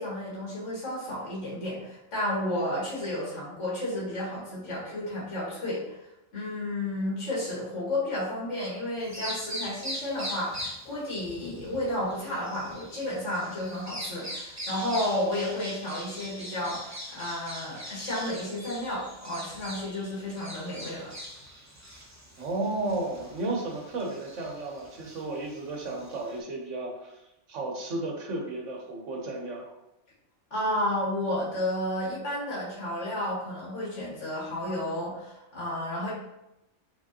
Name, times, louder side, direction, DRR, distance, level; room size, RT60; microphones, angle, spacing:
voice 1, 0.0-6.0 6.3-21.1 30.5-36.1, left 1 dB, 75° left, -7 dB, 1.9 m, -32 dB
Bird vocalization bird call bird song, 9.0-26.4, equal, 15° right, 0.6 m, -42 dB
voice 2, 22.4-27.1 27.5-29.7, right 2 dB, 85° right, 0 dB, 1.3 m, -33 dB
4.8 x 3.8 x 2.9 m, 0.89 s
omnidirectional pair, 1.3 m